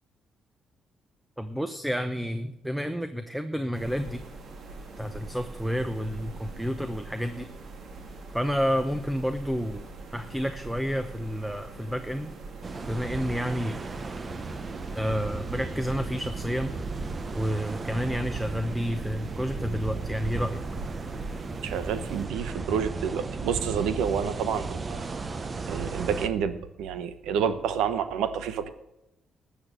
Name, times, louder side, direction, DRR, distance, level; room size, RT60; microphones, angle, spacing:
voice 1, 1.4-4.2 5.0-7.5 8.3-9.8 10.1-12.3 12.9-13.8 14.9-16.7 17.3-20.6, equal, 5° right, 8 dB, 0.9 m, -30 dB
sound 1, 3.7-22.3, right 3 dB, 60° right, 2.0 m, -43 dB
sound 2, 12.6-26.3, right 3 dB, 35° right, 0.9 m, -35 dB
voice 2, 21.6-25.1 25.5-28.7, right 7 dB, 90° right, 11 dB, 1.0 m, -29 dB
13.0 x 7.1 x 7.6 m, 0.88 s
cardioid pair, 90°, 0 cm